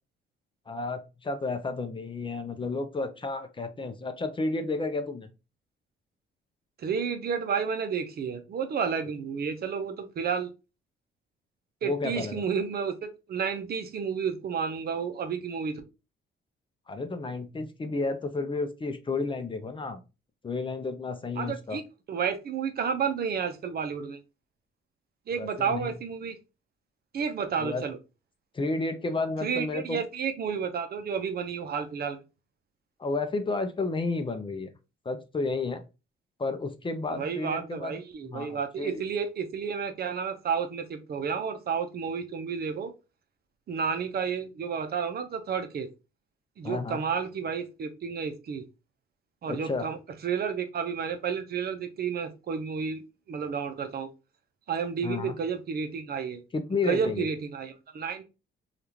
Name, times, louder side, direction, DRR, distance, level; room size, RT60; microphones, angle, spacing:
voice 1, 0.7-5.3 11.8-12.4 16.9-20.0 20.4-21.8 25.3-25.9 27.6-27.9 28.5-30.0 33.0-34.7 35.1-35.8 36.4-38.0 38.2-38.9 46.6-47.0 49.5-49.9 55.0-55.3 56.5-57.3, left 3 dB, 25° left, 8 dB, 0.5 m, -31 dB
voice 2, 6.8-10.5 11.8-15.8 21.4-21.8 22.1-24.2 25.3-26.4 27.1-28.0 29.4-32.2 37.1-42.9 43.7-45.9 46.6-48.6 49.4-50.0 50.2-53.0 53.3-54.1 54.7-56.4 56.9-58.2, right 6 dB, 50° right, 6 dB, 0.6 m, -31 dB
3.4 x 2.4 x 2.8 m, 0.28 s
cardioid pair, 90°, 20 cm